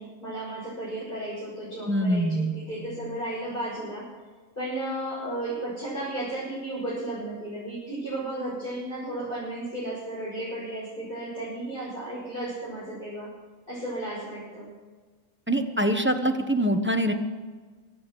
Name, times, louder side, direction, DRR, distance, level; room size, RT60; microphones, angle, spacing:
voice 1, 0.0-4.1 4.6-13.3 13.7-14.7, right 1 dB, 40° left, -8 dB, 5.7 m, -34 dB
voice 2, 1.9-2.5 15.5-17.1, right 1 dB, 10° right, 6 dB, 1.0 m, -24 dB
24.0 x 8.6 x 6.2 m, 1.4 s
omnidirectional pair, 1.4 m